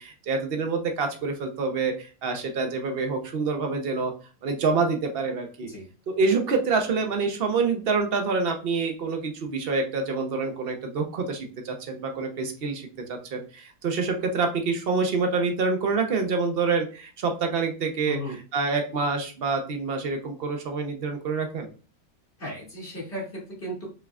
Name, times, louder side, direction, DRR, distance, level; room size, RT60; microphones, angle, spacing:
voice 1, 0.0-4.1 4.4-5.7 6.1-18.2 18.5-21.7, right 4 dB, 50° right, 4 dB, 0.7 m, -27 dB
voice 2, 18.1-18.4 22.4-23.9, equal, 40° left, -5 dB, 2.5 m, -35 dB
5.7 x 3.4 x 2.4 m, 0.36 s
omnidirectional pair, 1.8 m